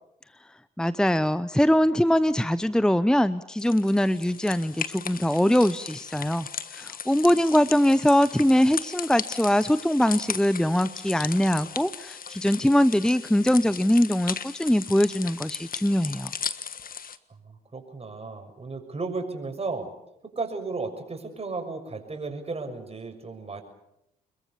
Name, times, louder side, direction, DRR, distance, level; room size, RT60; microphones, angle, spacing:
voice 1, 0.8-6.5 6.7-16.3, equal, 5° left, 15 dB, 0.9 m, -22 dB
sound 1, 3.6-17.2, left 7 dB, 45° left, 1.5 m, -37 dB
voice 2, 17.4-19.9 20.2-23.6, right 3 dB, 30° right, 5 dB, 6.7 m, -34 dB
27.0 x 22.0 x 7.1 m, 0.82 s
hypercardioid pair, 50°, 20 cm